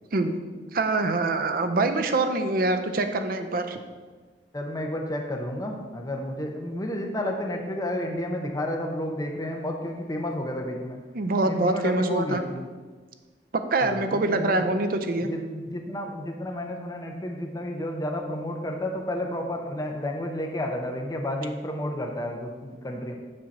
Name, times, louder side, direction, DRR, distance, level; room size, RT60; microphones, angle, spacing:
voice 1, 0.7-3.8 11.1-12.4 13.7-15.3, right 2 dB, 55° right, 8 dB, 0.5 m, -25 dB
voice 2, 4.5-11.0 11.4-12.7 13.8-14.7 15.2-23.1, left 1 dB, 20° left, 1 dB, 0.7 m, -31 dB
7.5 x 2.8 x 5.9 m, 1.4 s
head